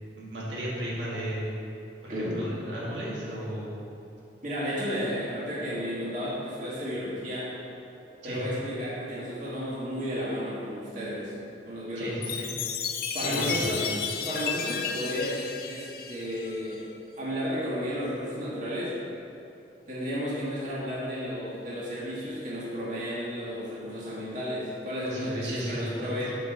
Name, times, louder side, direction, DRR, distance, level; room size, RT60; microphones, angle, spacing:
voice 1, 0.1-1.5 2.0-3.8 8.2-8.4 11.9-12.5 13.2-13.9 25.0-26.2, right 1 dB, 85° right, -7 dB, 1.6 m, -34 dB
voice 2, 2.1-2.4 4.4-7.5 8.2-11.3 11.6-12.2 13.1-13.8 14.2-15.4 15.7-16.8 17.2-18.9 19.9-26.3, equal, 45° right, -8 dB, 1.6 m, -33 dB
Chime, 12.2-16.8, left 7 dB, 50° left, 0.4 m, -33 dB
7.8 x 5.0 x 3.8 m, 2.7 s
head